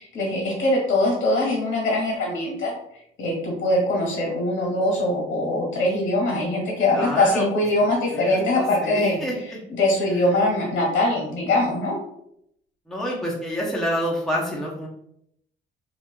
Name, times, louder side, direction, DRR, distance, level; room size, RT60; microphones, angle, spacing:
voice 1, 0.0-2.7 3.2-9.2 9.8-12.0, left 1 dB, 75° left, -2 dB, 1.4 m, -22 dB
voice 2, 6.9-7.4 8.1-9.6 10.1-10.2 12.9-14.9, equal, ahead, -4 dB, 0.7 m, -28 dB
3.0 x 2.4 x 2.2 m, 0.75 s
cardioid pair, 90°, 20 cm